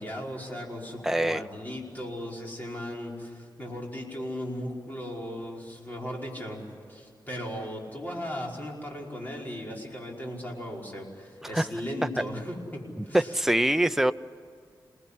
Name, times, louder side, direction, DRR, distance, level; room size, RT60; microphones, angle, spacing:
voice 1, 0.0-13.4, equal, 20° left, -2 dB, 5.1 m, -37 dB
voice 2, 1.0-1.4 11.5-11.7 13.1-14.1, right 1 dB, 5° right, 10 dB, 0.7 m, -23 dB
28.5 x 19.5 x 10.0 m, 2.1 s
wide cardioid pair, 130°, 8 cm